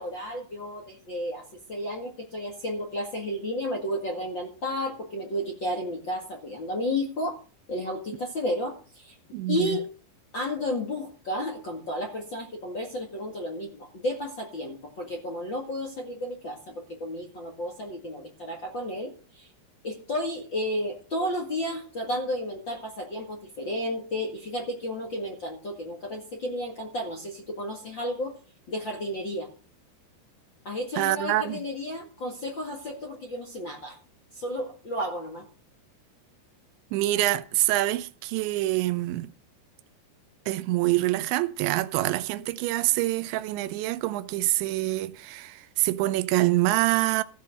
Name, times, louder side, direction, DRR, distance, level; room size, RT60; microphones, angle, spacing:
voice 1, 0.0-1.4 1.7-7.4 7.7-9.1 9.5-9.8 10.3-19.5 19.8-28.4 28.7-29.5 30.6-34.0 34.3-35.4, left 1 dB, 45° left, 1.6 m, -32 dB
voice 2, 9.3-9.8 31.0-31.6 36.9-39.3 40.5-47.2, right 17 dB, 85° right, 3.0 m, -26 dB
14.5 x 5.7 x 7.7 m
omnidirectional pair, 5.1 m